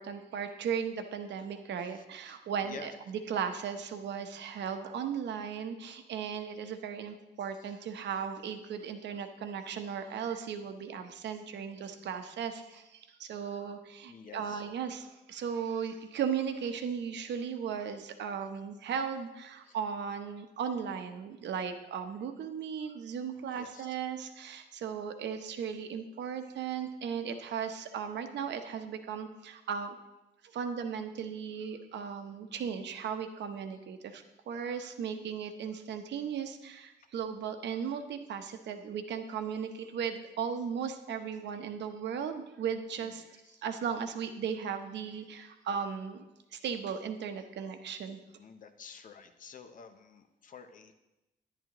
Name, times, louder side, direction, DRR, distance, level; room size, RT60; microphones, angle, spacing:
voice 1, 0.0-30.0 30.5-46.2 46.5-48.2, right 7 dB, 80° right, 7 dB, 0.9 m, -36 dB
voice 2, 1.8-2.9 7.5-8.1 14.1-14.6 19.6-19.8 23.5-24.0 43.0-43.6 48.4-50.9, left 6 dB, 50° left, 9 dB, 0.7 m, -51 dB
11.0 x 10.5 x 3.0 m, 0.97 s
wide cardioid pair, 160°, 18 cm